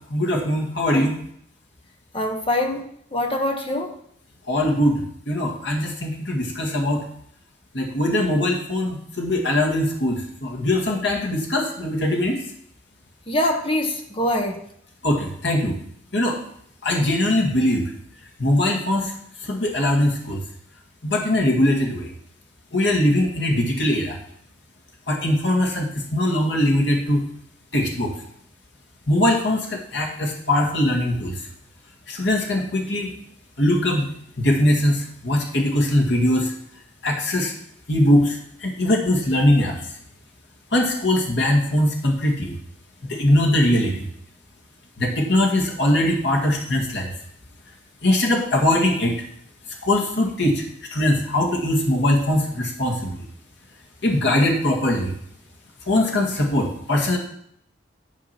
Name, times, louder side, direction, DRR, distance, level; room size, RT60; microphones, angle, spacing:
voice 1, 0.1-1.1 4.5-7.0 7.7-12.4 15.0-15.8 16.1-16.4 16.8-17.9 18.4-19.1 19.5-20.4 21.0-22.1 22.7-24.2 25.1-27.3 27.7-28.1 29.1-31.4 32.1-33.1 33.6-34.1 34.4-36.5 37.0-37.5 37.9-39.7 40.7-42.6 43.1-44.0 45.0-47.1 48.0-49.2 49.8-50.6 50.9-53.2 54.0-55.1 55.9-57.2, left 1 dB, 60° left, 0 dB, 1.9 m, -21 dB
voice 2, 2.1-2.8 3.1-3.9 13.3-14.6, left 1 dB, 30° left, 4 dB, 1.1 m, -24 dB
11.0 x 4.9 x 5.9 m, 0.68 s
head